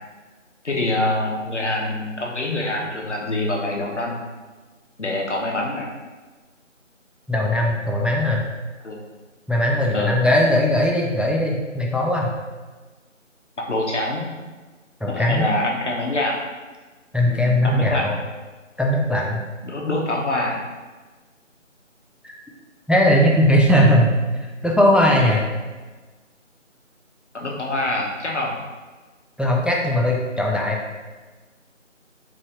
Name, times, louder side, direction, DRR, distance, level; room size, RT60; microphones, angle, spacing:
voice 1, 0.6-4.2 5.0-5.9 8.8-9.0 9.9-10.2 13.6-14.3 15.1-16.4 17.3-18.1 19.6-20.6 27.3-28.6, left 1 dB, 65° left, -1 dB, 0.7 m, -25 dB
voice 2, 7.3-8.5 9.5-12.3 15.0-15.5 17.1-18.1 18.8-19.4 22.9-24.1 24.6-25.4 29.4-30.8, left 1 dB, 5° right, -2 dB, 0.3 m, -19 dB
3.9 x 3.1 x 2.4 m, 1.3 s
figure-of-eight pair, 170°, 39 cm